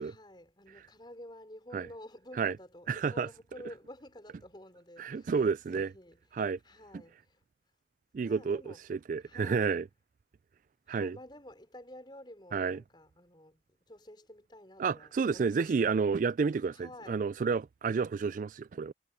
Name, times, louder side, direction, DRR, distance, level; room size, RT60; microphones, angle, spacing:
voice 1, 0.0-5.4 5.7-6.2 6.6-7.4 8.2-8.8 9.2-9.8 10.9-15.9 16.7-17.2, left 1 dB, 25° left, 5.3 m, -51 dB
voice 2, 2.9-3.3 5.0-5.9 6.3-6.6 8.1-8.6 8.9-9.9 10.9-11.2 12.5-12.8 14.8-18.9, right 5 dB, 45° right, 0.3 m, -30 dB
head